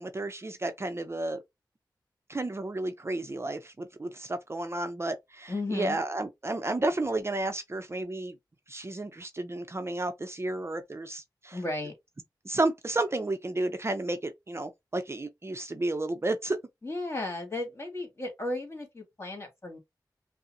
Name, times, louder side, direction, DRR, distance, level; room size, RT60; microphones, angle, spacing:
voice 1, 0.0-1.4 2.3-8.3 8.7-11.6 12.4-16.6, right 2 dB, 35° right, 0.5 m, -32 dB
voice 2, 5.5-6.0 11.5-11.9 16.8-19.8, left 2 dB, 35° left, 1.9 m, -34 dB
5.4 x 2.0 x 2.6 m
cardioid pair, 45°, 8 cm